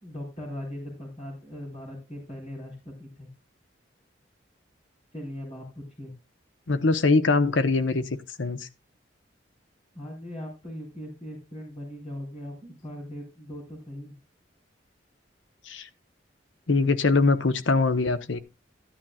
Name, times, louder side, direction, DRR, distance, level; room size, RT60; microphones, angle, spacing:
voice 1, 0.0-3.3 5.1-6.1 9.9-14.1, left 1 dB, 35° left, 4.2 m, -39 dB
voice 2, 6.7-8.0 8.4-8.7 15.7-15.9 16.7-18.4, left 3 dB, 85° left, 0.9 m, -22 dB
15.0 x 10.0 x 2.3 m
head